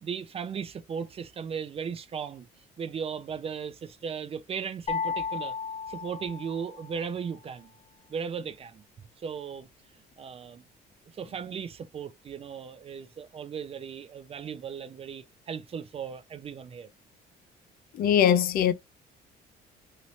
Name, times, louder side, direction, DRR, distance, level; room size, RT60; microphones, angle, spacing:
voice 1, 0.0-2.5 2.8-5.5 5.9-7.7 8.1-8.8 9.2-9.7 10.2-10.7 11.1-16.9, right 6 dB, 35° right, 0.5 m, -36 dB
sound 1, 4.9-7.0, left 6 dB, 40° left, 0.8 m, -34 dB
voice 2, 17.9-18.7, left 9 dB, 60° left, 0.5 m, -21 dB
2.9 x 2.7 x 3.0 m
cardioid pair, 110°, 17 cm